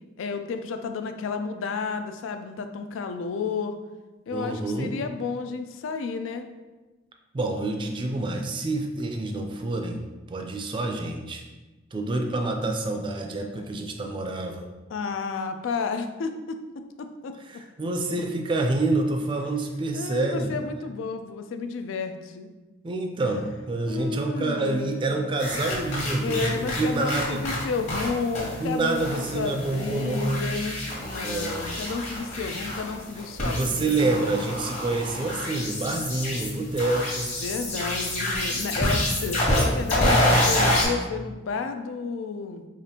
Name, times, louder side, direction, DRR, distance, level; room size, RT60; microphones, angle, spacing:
voice 1, 0.2-3.8 4.3-6.5 14.9-16.6 17.0-17.3 19.9-22.5 23.9-25.1 26.2-34.3 37.4-42.7, left 4 dB, 90° left, 8 dB, 0.4 m, -32 dB
voice 2, 4.3-4.9 7.3-11.4 11.9-14.7 17.5-20.6 22.8-27.4 28.6-30.4 31.0-31.8 33.4-37.3, right 2 dB, 25° right, 3 dB, 0.3 m, -27 dB
sound 1, 25.4-28.1 28.3-28.5 28.9-40.8, left 1 dB, 40° left, 1.1 m, -27 dB
4.9 x 2.5 x 2.8 m, 1.2 s
head